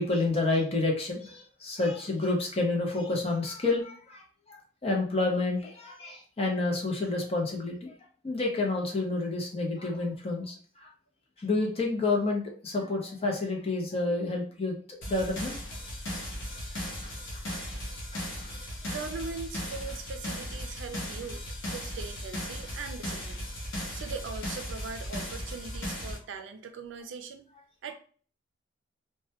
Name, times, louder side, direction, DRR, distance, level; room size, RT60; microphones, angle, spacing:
voice 1, 0.0-4.2 4.5-7.9 8.2-10.6 10.8-10.9 11.4-15.6 18.1-18.5, left 2 dB, 30° left, 0 dB, 0.6 m, -29 dB
sound 1, 15.0-26.2, equal, 75° left, 0.7 m, -37 dB
voice 2, 18.8-21.4 21.7-23.4 23.9-27.5 27.8-27.9, right 5 dB, 75° right, 7 dB, 0.4 m, -40 dB
2.1 x 2.1 x 2.8 m, 0.43 s
head